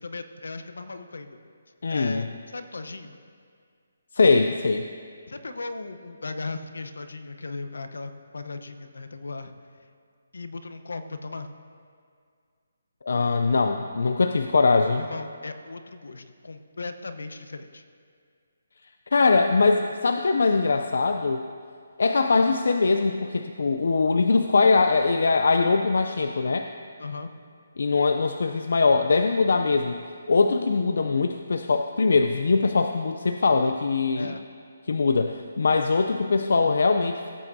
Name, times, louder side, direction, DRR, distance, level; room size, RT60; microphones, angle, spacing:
voice 1, 0.0-1.4 1.9-3.2 5.3-9.5 10.3-11.5 14.9-17.8 27.0-27.3 34.1-34.5, left 3 dB, 90° left, 8 dB, 0.8 m, -37 dB
voice 2, 1.8-2.3 4.1-4.9 13.0-15.0 19.1-21.5 22.0-26.7 27.8-30.0 30.3-34.4 34.9-37.3, left 4 dB, 70° left, 6 dB, 0.4 m, -22 dB
17.0 x 8.6 x 2.7 m, 2.2 s
hypercardioid pair, 165°, 0 cm